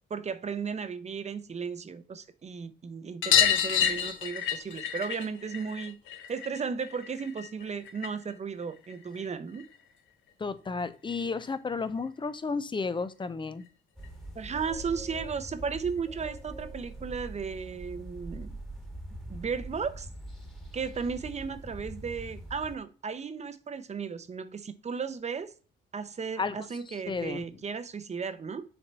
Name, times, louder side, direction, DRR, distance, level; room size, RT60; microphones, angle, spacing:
voice 1, 0.1-6.0 6.3-9.6 14.3-18.6 19.3-20.1 20.7-25.5 25.9-28.6, right 5 dB, 35° right, 0.8 m, -35 dB
sound 1, 3.2-8.3 8.6-9.8 11.1-11.2 11.4-11.5 11.8-11.9 13.2-13.3 13.6-13.7 14.0-14.1 15.4-15.5 16.2-16.3, left 9 dB, 75° left, 0.9 m, -29 dB
voice 2, 10.4-13.6 26.4-26.6 26.9-27.5, left 4 dB, 25° left, 0.6 m, -32 dB
sound 2, 14.0-22.8, right 1 dB, ahead, 1.6 m, -43 dB
6.9 x 3.9 x 4.2 m
cardioid pair, 90°, 20 cm